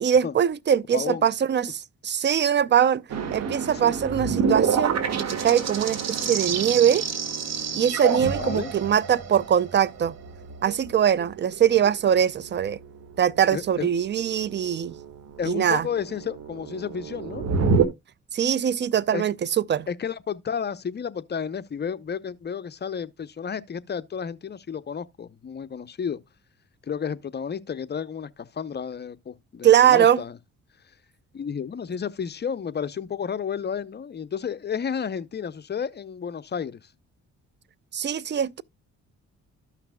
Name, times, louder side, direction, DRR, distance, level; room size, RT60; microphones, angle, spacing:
voice 1, 0.0-3.0 3.3-7.0 7.7-10.1 10.6-12.8 13.2-14.9 15.5-15.8 18.3-19.3 19.7-19.9 29.6-30.2 37.9-38.6, right 9 dB, 35° right, 0.5 m, -22 dB
voice 2, 0.9-1.3 3.7-3.9 8.4-8.7 13.5-13.9 15.4-17.4 19.1-19.2 19.9-26.2 26.8-30.4 31.3-36.9, left 7 dB, 35° left, 0.7 m, -32 dB
sound 1, 3.1-17.8, right 6 dB, 60° right, 1.6 m, -28 dB
13.5 x 5.8 x 2.2 m
cardioid pair, 90°, 30 cm